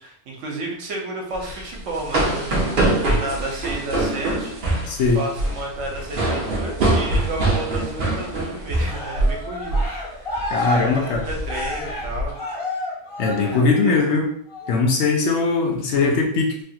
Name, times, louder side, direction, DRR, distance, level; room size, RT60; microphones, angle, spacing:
voice 1, 0.0-12.4 13.3-14.2, right 2 dB, 70° right, 0 dB, 1.1 m, -32 dB
sound 1, 1.3-9.4 9.7-10.0 10.3-10.7 11.1-12.2, right 2 dB, 50° right, 0.8 m, -23 dB
voice 2, 4.9-5.2 10.5-11.2 13.2-14.3 14.7-16.6, left 4 dB, 65° left, 1 dB, 0.9 m, -20 dB
Cheering, 8.8-14.0 14.5-14.9, left 1 dB, 50° left, 1.1 m, -31 dB
3.1 x 2.3 x 2.7 m, 0.64 s
omnidirectional pair, 1.3 m